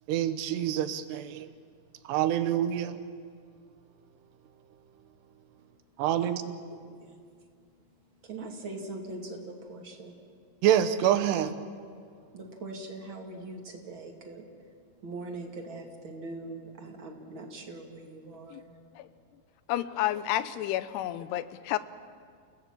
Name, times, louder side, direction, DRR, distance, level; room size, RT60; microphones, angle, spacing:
voice 1, 0.1-1.5 2.1-3.0 6.0-6.6 10.6-11.5, right 10 dB, 85° right, 3.1 m, -26 dB
voice 2, 6.7-7.1 8.2-10.1 12.3-14.4 15.0-18.7, right 2 dB, 40° right, 2.3 m, -41 dB
voice 3, 19.7-21.8, left 13 dB, 85° left, 2.8 m, -30 dB
29.0 x 17.0 x 7.4 m
omnidirectional pair, 4.7 m